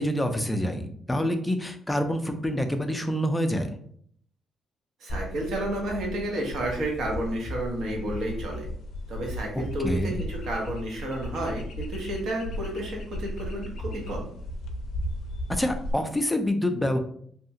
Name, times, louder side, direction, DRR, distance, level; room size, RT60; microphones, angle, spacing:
voice 1, 0.0-3.7 9.8-10.2 15.5-17.0, equal, 10° left, 6 dB, 0.4 m, -27 dB
voice 2, 5.0-8.6 9.1-14.3, right 1 dB, 65° right, 0 dB, 0.9 m, -31 dB
sound 1, 5.1-15.9, equal, 75° left, 0.4 m, -36 dB
2.7 x 2.3 x 2.7 m, 0.62 s
cardioid pair, 115°, 0 cm